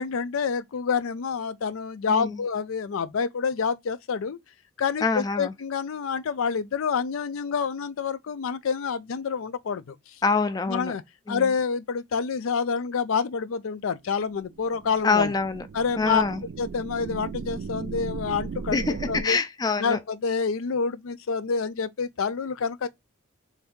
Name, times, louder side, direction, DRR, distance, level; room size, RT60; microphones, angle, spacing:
voice 1, 0.0-4.4 4.8-10.0 10.7-11.0 11.3-15.3 15.7-16.2 16.6-19.4 19.8-22.9, left 5 dB, 90° left, 0.4 m, -27 dB
voice 2, 5.0-5.5 10.2-10.9 11.3-11.5 15.0-15.6 16.0-16.4 18.7-20.0, left 4 dB, 20° left, 0.3 m, -25 dB
sound 1, 14.3-19.2, right 5 dB, 60° right, 0.3 m, -36 dB
3.4 x 2.6 x 3.6 m
head